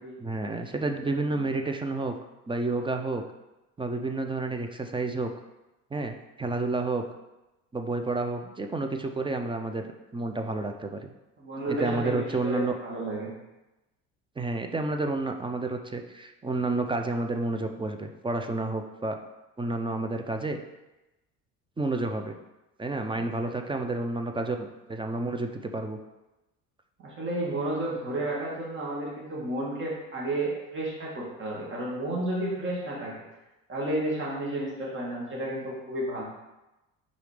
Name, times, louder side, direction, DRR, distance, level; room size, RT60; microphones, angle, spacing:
voice 1, 0.2-2.1 2.5-3.2 3.8-5.3 5.9-7.0 7.7-9.8 10.1-11.1 11.7-12.7 14.4-19.2 19.6-20.6 21.8-22.4 22.8-26.0, right 3 dB, 15° right, 5 dB, 0.6 m, -30 dB
voice 2, 11.4-13.3 23.2-23.7 27.0-33.1 33.7-36.2, right 1 dB, 35° right, -4 dB, 2.0 m, -32 dB
5.0 x 4.0 x 5.0 m, 1.0 s
supercardioid pair, 90°, 35 cm